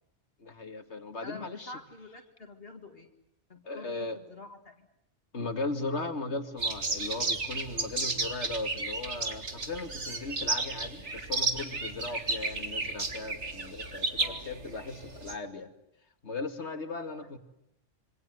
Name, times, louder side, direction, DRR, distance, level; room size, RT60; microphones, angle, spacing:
voice 1, 0.4-1.7 3.6-4.2 5.3-15.7 16.2-17.4, left 3 dB, 70° left, 8 dB, 2.6 m, -37 dB
voice 2, 1.2-3.1 3.5-4.9 14.2-14.5 17.2-17.3, left 3 dB, 55° left, 5 dB, 2.4 m, -47 dB
sound 1, 6.6-15.4, right 3 dB, 75° right, 2.7 m, -33 dB
27.0 x 25.5 x 7.8 m, 0.82 s
omnidirectional pair, 1.2 m